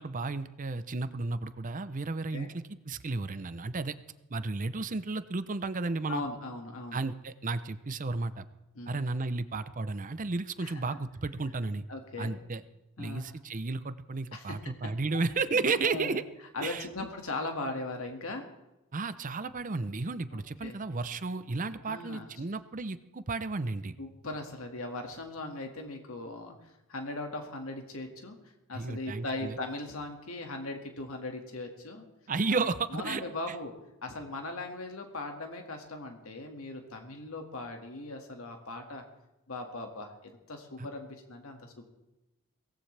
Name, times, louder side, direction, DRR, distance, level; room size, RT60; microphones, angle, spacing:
voice 1, 0.0-3.9 4.3-6.2 6.9-8.5 8.9-11.8 12.2-12.6 13.0-16.2 16.6-16.9 18.9-24.0 28.7-29.6 32.3-33.2 33.5-33.6 40.8-40.9, right 3 dB, 35° right, 12 dB, 0.6 m, -33 dB
voice 2, 6.1-7.0 8.7-9.0 10.6-10.8 11.9-12.4 13.0-13.2 14.3-14.6 15.1-15.2 15.8-16.2 16.5-18.4 20.3-20.8 21.8-22.3 24.0-28.4 28.7-32.1 32.5-32.7 32.9-33.7 34.0-39.0 39.5-41.9, left 2 dB, 70° left, 3 dB, 2.0 m, -39 dB
23.0 x 17.5 x 3.4 m, 0.99 s
head